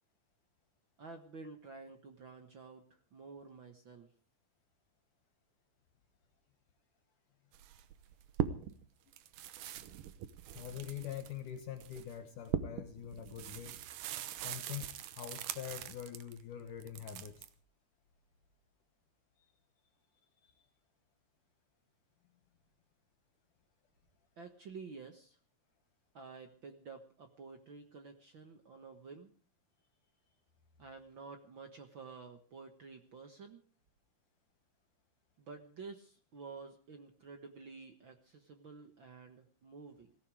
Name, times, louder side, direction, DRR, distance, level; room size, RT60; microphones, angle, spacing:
voice 1, 1.0-4.1 24.4-25.4 26.1-29.3 30.8-33.6 35.4-40.2, right 4 dB, 85° right, 6 dB, 1.0 m, -51 dB
sound 1, 7.5-8.8 9.1-16.4 16.8-17.5, right 11 dB, 70° right, 2.3 m, -41 dB
voice 2, 10.6-13.8 14.4-17.5 20.4-20.5, left 10 dB, 65° left, 8 dB, 2.4 m, -44 dB
18.0 x 16.5 x 4.8 m, 0.40 s
omnidirectional pair, 4.5 m